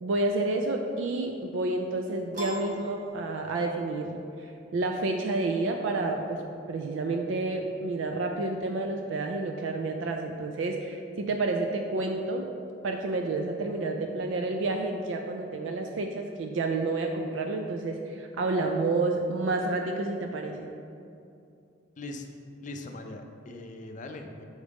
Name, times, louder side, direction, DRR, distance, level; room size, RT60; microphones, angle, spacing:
voice 1, 0.0-6.4 6.7-12.5 12.8-20.7, right 2 dB, 75° right, 3 dB, 0.4 m, -30 dB
Piano, 2.3-3.9, equal, 45° right, 1.0 m, -40 dB
voice 2, 22.0-22.3 22.5-24.4, left 2 dB, 40° left, 4 dB, 0.4 m, -40 dB
6.4 x 4.9 x 3.4 m, 2.6 s
head